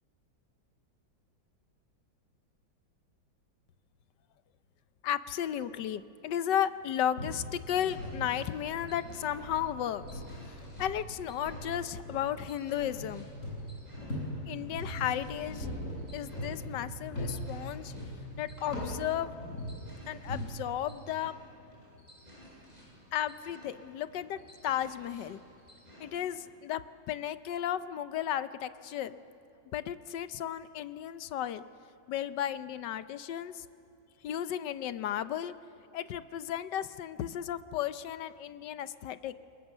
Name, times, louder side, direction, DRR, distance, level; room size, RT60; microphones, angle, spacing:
voice 1, 5.0-10.2 10.5-13.3 14.4-15.7 16.1-17.9 18.4-19.4 20.1-21.3 23.1-25.4 26.0-26.8 27.1-29.2 29.7-31.6 32.1-33.6 34.2-35.5 35.9-39.4, left 10 dB, 70° left, 13 dB, 1.3 m, -34 dB
sound 1, 7.2-20.4, equal, 40° left, 8.0 m, -41 dB
sound 2, 7.3-26.4, equal, 20° right, 8.0 m, -56 dB
28.5 x 22.0 x 7.3 m, 2.7 s
omnidirectional pair, 2.1 m